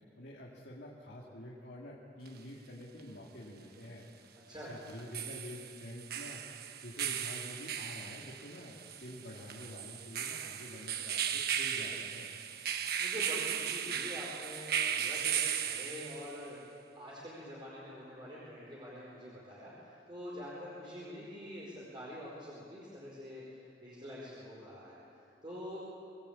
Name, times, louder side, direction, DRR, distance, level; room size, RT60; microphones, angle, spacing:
voice 1, 0.2-4.1 4.5-12.3, left 1 dB, 60° left, -4 dB, 3.1 m, -48 dB
sound 1, 2.3-2.4 4.9-16.5, right 8 dB, 60° right, 1.2 m, -36 dB
voice 2, 4.5-5.0 11.7-11.9 13.0-16.6 16.9-25.9, equal, 25° right, -6 dB, 4.9 m, -46 dB
24.5 x 20.0 x 8.9 m, 2.8 s
head